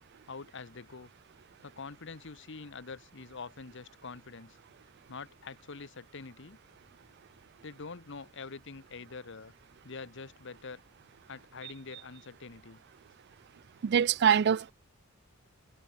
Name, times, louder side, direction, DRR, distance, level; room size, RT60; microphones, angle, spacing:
voice 1, 0.3-1.1 1.6-4.6 5.1-6.6 7.6-9.5 9.8-10.8 11.3-12.8, left 4 dB, 60° left, 1.1 m, -45 dB
voice 2, 13.8-14.7, right 8 dB, 50° right, 0.4 m, -24 dB
head